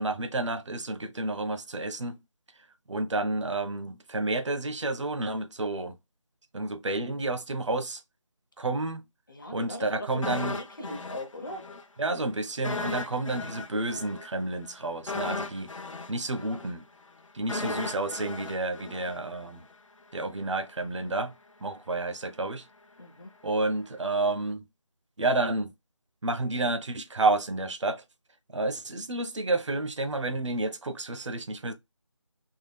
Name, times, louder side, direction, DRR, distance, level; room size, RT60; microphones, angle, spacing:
voice 1, 0.0-2.2 2.9-6.0 6.5-8.0 8.6-9.0 9.5-10.6 12.0-15.7 16.1-16.9 17.3-19.6 20.1-21.3 21.6-22.7 23.4-24.6 25.2-25.7 26.2-28.0 28.5-31.7, right 2 dB, 65° right, 0.7 m, -30 dB
voice 2, 9.3-10.1 10.5-11.6 23.0-23.3, left 1 dB, 40° left, 0.8 m, -39 dB
sound 1, 10.2-11.8 12.1-12.3 12.6-19.7 20.0-20.2, left 3 dB, 75° left, 0.7 m, -36 dB
3.6 x 2.3 x 3.3 m
figure-of-eight pair, 175°, 16 cm